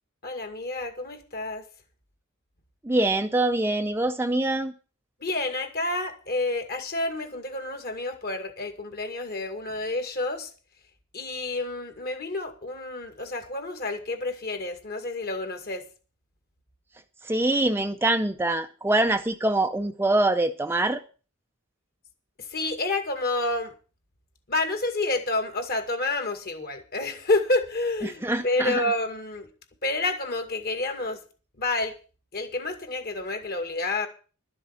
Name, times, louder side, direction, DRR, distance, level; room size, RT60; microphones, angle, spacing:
voice 1, 0.2-1.7 5.2-10.5 11.1-15.9 19.1-19.2 22.4-23.7 24.5-29.5 29.8-31.2 31.6-32.0 32.3-34.1, left 2 dB, 45° left, 7 dB, 2.2 m, -29 dB
voice 2, 2.8-4.7 17.2-21.0 28.0-28.8, right 2 dB, 10° right, 7 dB, 0.6 m, -24 dB
12.0 x 7.6 x 7.3 m, 0.37 s
head